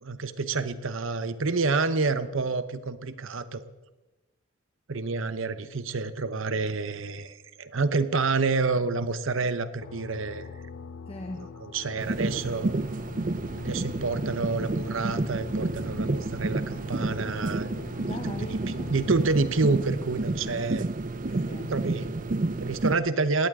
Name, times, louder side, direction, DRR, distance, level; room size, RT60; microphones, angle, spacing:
voice 1, 0.0-3.6 4.9-10.5 11.6-12.7 13.6-17.7 18.1-18.3 18.9-20.8 21.7-23.5, right 3 dB, 75° right, 12 dB, 0.9 m, -28 dB
sound 1, 9.8-19.9, left 5 dB, 70° left, 0.5 m, -43 dB
voice 2, 11.1-11.6 18.0-18.9 21.3-21.8, left 1 dB, 30° left, 4 dB, 0.9 m, -39 dB
sound 2, 12.0-23.0, right 2 dB, 40° right, 0.5 m, -30 dB
19.5 x 17.0 x 3.7 m, 1.1 s
head